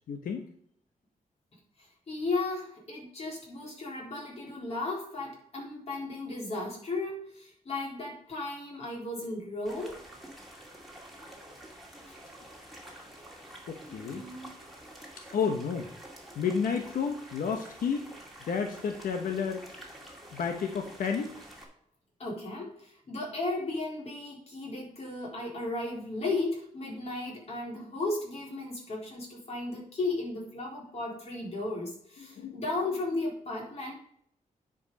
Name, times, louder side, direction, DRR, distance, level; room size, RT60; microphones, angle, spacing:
voice 1, 0.1-0.5 12.4-12.5 13.7-14.3 15.3-15.9 16.3-18.1 18.5-19.7 20.3-21.3 32.3-32.6, left 6 dB, 90° left, 4 dB, 1.0 m, -31 dB
voice 2, 2.1-10.0 12.1-12.2 13.9-14.5 22.2-33.9, left 2 dB, 45° left, -2 dB, 3.9 m, -35 dB
sound 1, 9.6-21.6, right 1 dB, ahead, 2.2 m, -49 dB
9.9 x 5.2 x 5.3 m, 0.65 s
wide cardioid pair, 150°, 14 cm